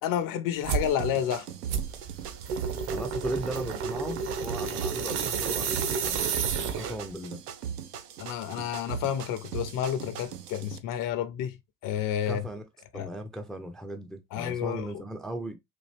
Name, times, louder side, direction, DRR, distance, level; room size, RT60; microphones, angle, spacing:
voice 1, 0.0-1.5 8.2-11.6 11.8-12.4 12.9-13.1 14.3-15.0, left 10 dB, 45° left, 0.6 m, -30 dB
sound 1, 0.6-0.9 1.7-7.1, right 6 dB, 60° right, 1.1 m, -31 dB
sound 2, 0.7-10.8, right 8 dB, 80° right, 0.7 m, -39 dB
voice 2, 2.9-6.2 6.8-7.4 12.3-12.6 12.9-15.6, right 1 dB, ahead, 0.5 m, -37 dB
4.3 x 2.5 x 3.2 m
hypercardioid pair, 75°, 46 cm